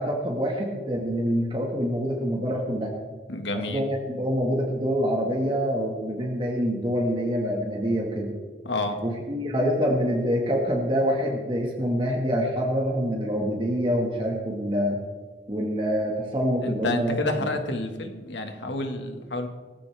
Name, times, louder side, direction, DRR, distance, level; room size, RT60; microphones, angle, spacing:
voice 1, 0.0-2.9 3.5-8.4 9.0-15.0 15.5-17.2, equal, 25° right, -1 dB, 1.9 m, -26 dB
voice 2, 3.3-3.9 8.6-9.0 16.6-19.5, left 2 dB, 85° left, 5 dB, 1.9 m, -29 dB
18.5 x 15.0 x 3.6 m, 1.4 s
head